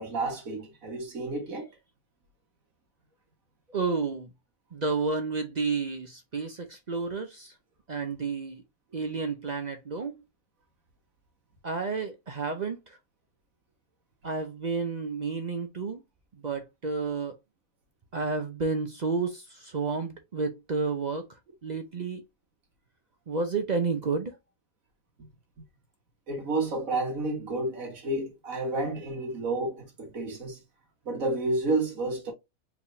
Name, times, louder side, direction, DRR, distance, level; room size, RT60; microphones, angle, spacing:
voice 1, 0.0-1.7 26.3-30.6 31.1-32.3, right 2 dB, 65° right, 2.0 m, -30 dB
voice 2, 3.7-4.3 4.7-7.5 7.9-8.6 8.9-10.1 11.6-13.0 14.2-16.0 16.4-17.4 18.1-21.2 21.6-22.2 23.3-24.4, right 4 dB, 50° right, 0.5 m, -31 dB
4.9 x 3.5 x 2.6 m
omnidirectional pair, 1.5 m